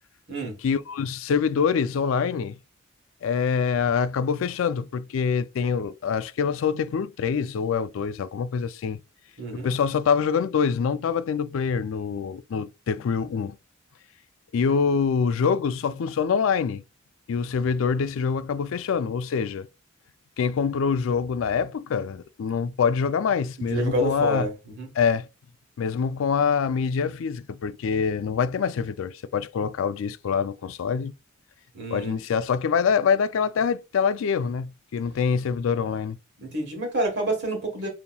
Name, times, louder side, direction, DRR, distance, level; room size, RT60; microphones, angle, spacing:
voice 1, 0.6-2.6 3.2-9.0 9.6-13.6 14.5-16.8 17.3-19.7 20.4-24.5 25.0-25.3 25.8-31.1 31.9-36.2, left 6 dB, 70° left, 0.3 m, -25 dB
voice 2, 9.4-9.7 23.6-24.9 31.7-32.2 36.4-37.9, right 2 dB, 60° right, 1.4 m, -28 dB
5.3 x 2.9 x 2.3 m
head